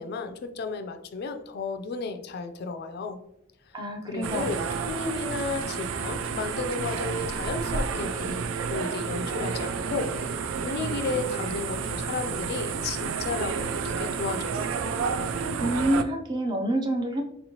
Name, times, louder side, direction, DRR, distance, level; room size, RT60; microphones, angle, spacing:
voice 1, 0.0-3.2 4.1-8.4 8.7-10.1 10.6-14.7, left 4 dB, 55° left, 7 dB, 0.3 m, -33 dB
voice 2, 3.7-4.8 15.6-17.2, right 1 dB, 20° right, 3 dB, 0.4 m, -28 dB
sound 1, 4.2-16.0, right 5 dB, 90° right, 0.3 m, -30 dB
4.2 x 3.0 x 2.8 m, 0.77 s
head